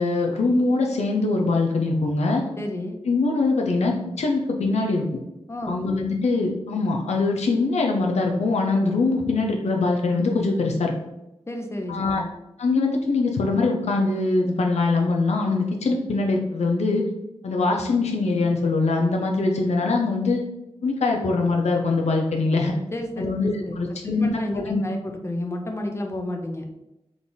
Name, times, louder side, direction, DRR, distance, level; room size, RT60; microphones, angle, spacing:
voice 1, 0.0-2.4 3.1-5.0 5.7-10.9 11.9-12.2 12.6-17.0 17.4-20.4 20.8-22.7 23.2-24.4 24.7-24.8, left 3 dB, 80° left, 1 dB, 0.6 m, -22 dB
voice 2, 2.6-3.0 5.5-5.8 11.5-12.3 22.9-23.3 23.6-23.8 24.0-26.7, left 1 dB, 25° left, 3 dB, 0.7 m, -31 dB
3.6 x 2.4 x 3.8 m, 0.91 s
cardioid pair, 40°, 11 cm